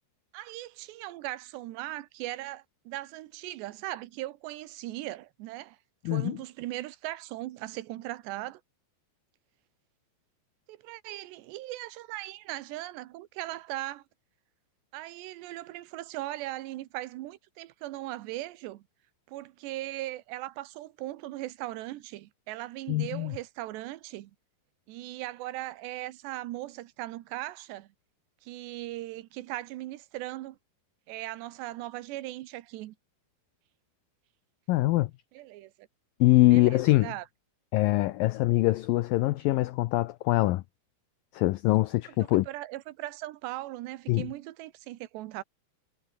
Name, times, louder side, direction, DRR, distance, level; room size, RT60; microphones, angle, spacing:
voice 1, 0.3-5.8 6.1-8.6 10.7-14.0 14.9-18.8 19.3-24.3 24.9-27.9 28.4-30.6 31.1-32.9 35.3-35.9 36.5-37.3 42.2-45.4, right 16 dB, 90° right, 3.2 m, -39 dB
voice 2, 6.1-6.4 22.9-23.3 34.7-35.1 36.2-37.1 37.7-40.6 41.3-42.5 44.1-44.3, left 18 dB, 85° left, 2.0 m, -23 dB
omnidirectional pair, 4.9 m